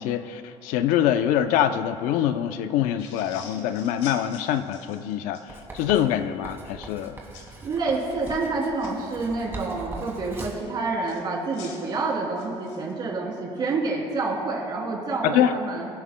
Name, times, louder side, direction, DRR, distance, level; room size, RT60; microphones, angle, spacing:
voice 1, 0.0-7.2 15.2-15.5, left 10 dB, 85° left, 9 dB, 0.7 m, -24 dB
sound 1, 3.0-5.5 7.3-7.6 8.1-8.9 11.0-12.9, left 5 dB, 60° left, 2.5 m, -46 dB
Writing, 5.5-10.7, right 3 dB, 20° right, 2.0 m, -41 dB
voice 2, 7.6-15.9, right 3 dB, 35° right, -2 dB, 3.0 m, -28 dB
25.5 x 11.0 x 2.2 m, 2.5 s
cardioid pair, 160°, 13 cm